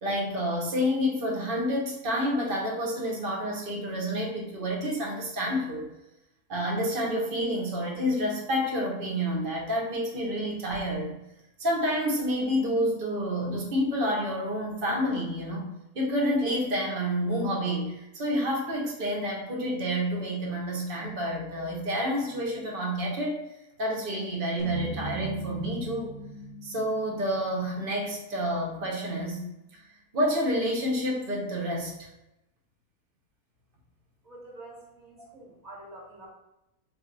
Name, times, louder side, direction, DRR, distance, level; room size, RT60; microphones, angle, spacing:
voice 1, 0.0-5.9 6.5-11.2 11.6-15.6 15.9-23.4 23.8-26.2 26.6-29.4 30.1-32.1 35.2-35.3, equal, 45° right, -2 dB, 0.9 m, -29 dB
sound 1, 24.6-28.9, right 2 dB, 60° left, 0.5 m, -40 dB
voice 2, 34.2-36.3, right 2 dB, 25° right, -6 dB, 1.4 m, -47 dB
3.1 x 2.7 x 3.9 m, 0.90 s
omnidirectional pair, 1.6 m